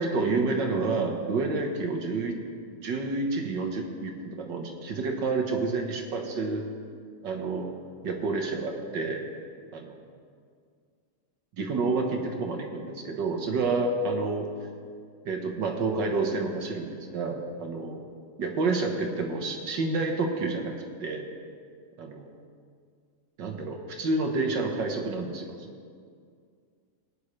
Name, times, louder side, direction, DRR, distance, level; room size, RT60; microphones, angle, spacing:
voice 1, 0.0-2.4 2.8-6.7 7.2-7.7 8.0-9.2 9.7-10.0 11.6-14.5 15.3-18.0 18.4-20.7 21.0-21.2 22.0-22.3 23.4-25.5, right 3 dB, 60° right, 2 dB, 1.7 m, -29 dB
21.0 x 10.0 x 3.2 m, 2.2 s
omnidirectional pair, 2.4 m